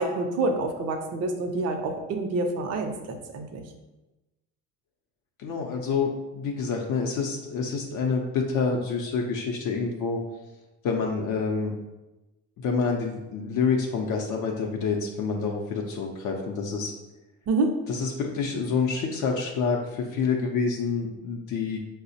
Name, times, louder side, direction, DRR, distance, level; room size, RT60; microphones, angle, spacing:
voice 1, 0.0-3.6 17.5-17.7, right 2 dB, 45° right, 4 dB, 0.5 m, -27 dB
voice 2, 5.4-6.1 6.3-10.2 10.8-11.7 12.6-16.9 17.9-21.8, left 5 dB, 60° left, 1 dB, 0.5 m, -27 dB
4.8 x 2.0 x 2.6 m, 1.0 s
supercardioid pair, 90°, 35 cm